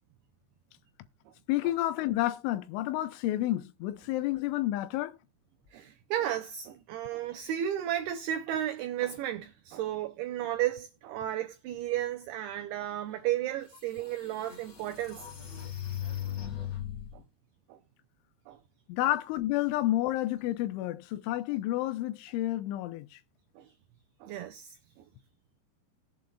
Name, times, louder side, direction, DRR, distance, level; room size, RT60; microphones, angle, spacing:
voice 1, 1.5-5.2 18.9-23.2, left 15 dB, 90° left, 3.1 m, -30 dB
voice 2, 5.7-15.3 17.7-17.8 18.5-18.6 23.6-23.7 24.2-24.8, right 11 dB, 90° right, 2.2 m, -33 dB
sound 1, 13.4-13.5 14.0-17.2, left 11 dB, 45° left, 1.4 m, -38 dB
19.0 x 7.7 x 2.3 m
omnidirectional pair, 5.3 m